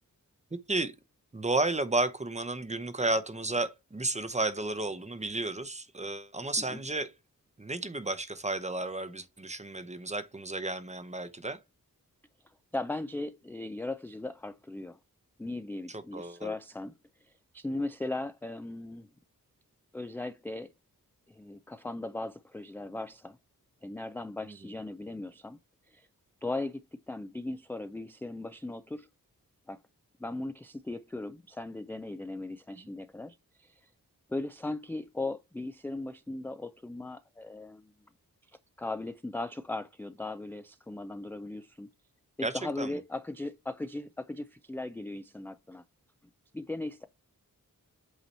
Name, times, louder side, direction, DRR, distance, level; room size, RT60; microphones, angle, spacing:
voice 1, 1.3-7.1 7.6-11.6 15.9-16.5 24.5-24.6 32.8-32.9 42.4-42.9, right 2 dB, 20° right, 0.7 m, -32 dB
voice 2, 12.7-15.0 15.4-16.9 17.2-19.1 19.9-20.7 21.3-23.4 23.8-25.6 25.9-26.1 26.4-26.8 27.1-29.1 29.7-29.8 30.2-33.9 34.3-37.9 38.8-41.9 42.4-45.8 46.5-47.0, left 2 dB, 5° left, 0.3 m, -38 dB
8.1 x 2.9 x 4.2 m
wide cardioid pair, 80°, 35 cm